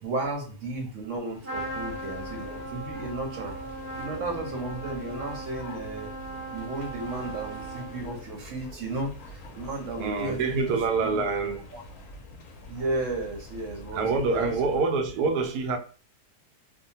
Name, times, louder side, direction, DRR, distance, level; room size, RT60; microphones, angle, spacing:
voice 1, 0.0-3.6 4.0-6.1 6.5-11.2 11.7-11.8 12.7-14.0 14.3-14.5, right 2 dB, 65° right, 0.9 m, -34 dB
Trumpet, 1.4-8.3, right 2 dB, 10° right, 0.8 m, -38 dB
sound 1, 1.5-14.8, left 1 dB, 70° left, 0.9 m, -45 dB
voice 2, 10.0-11.6 13.9-15.8, right 4 dB, 90° right, 1.1 m, -26 dB
2.6 x 2.1 x 2.7 m
omnidirectional pair, 1.6 m